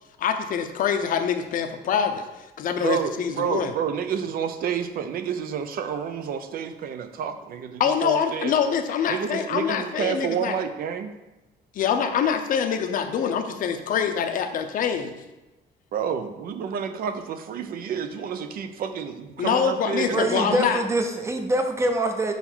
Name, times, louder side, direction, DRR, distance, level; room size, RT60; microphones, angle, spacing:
voice 1, 0.2-2.2 2.6-3.7 7.8-10.5 11.8-15.1 19.4-20.8, left 7 dB, 50° left, 6 dB, 0.6 m, -25 dB
voice 2, 2.7-8.6 9.1-11.1 13.1-13.2 15.9-20.7, right 7 dB, 55° right, 9 dB, 0.6 m, -29 dB
voice 3, 20.1-22.3, right 1 dB, 15° right, 5 dB, 0.6 m, -24 dB
5.6 x 4.0 x 6.1 m, 1.0 s
cardioid pair, 170°, 18 cm